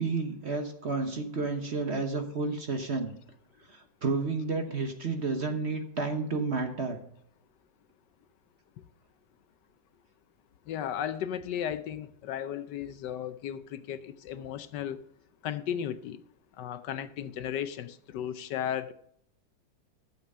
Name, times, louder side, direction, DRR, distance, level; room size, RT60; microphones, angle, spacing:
voice 1, 0.0-3.1 3.7-7.0, right 3 dB, 45° right, 6 dB, 1.1 m, -31 dB
voice 2, 10.7-15.0 15.4-16.2 16.6-18.9, left 9 dB, 75° left, 12 dB, 1.2 m, -35 dB
12.5 x 7.5 x 5.5 m, 0.70 s
omnidirectional pair, 2.0 m